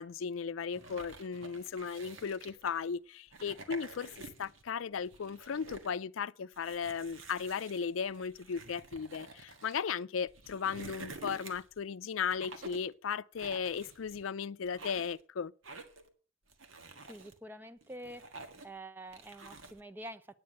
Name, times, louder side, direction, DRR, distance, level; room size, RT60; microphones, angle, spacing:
voice 1, 0.0-4.1 4.4-15.5, left 6 dB, 90° left, 0.5 m, -36 dB
sound 1, 0.7-2.8 3.3-4.6 5.0-5.9 6.5-9.8 10.3-11.8 12.3-12.9 13.4-14.3 14.6-15.2 15.6-16.1 16.5-17.3 17.8-18.8 19.1-19.8, right 3 dB, 85° right, 1.7 m, -49 dB
voice 2, 17.1-18.2 18.6-20.3, right 1 dB, 10° right, 0.6 m, -47 dB
9.5 x 9.3 x 6.5 m
head